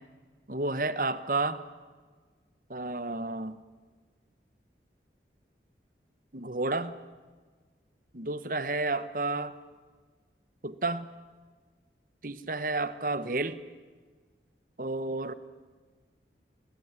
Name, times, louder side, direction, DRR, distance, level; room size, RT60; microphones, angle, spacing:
voice 1, 0.5-1.6 2.7-3.6 6.3-7.0 8.1-9.5 10.6-11.1 12.2-13.6 14.8-15.3, right 2 dB, 50° right, 13 dB, 1.3 m, -31 dB
27.0 x 20.5 x 9.7 m, 1.4 s
head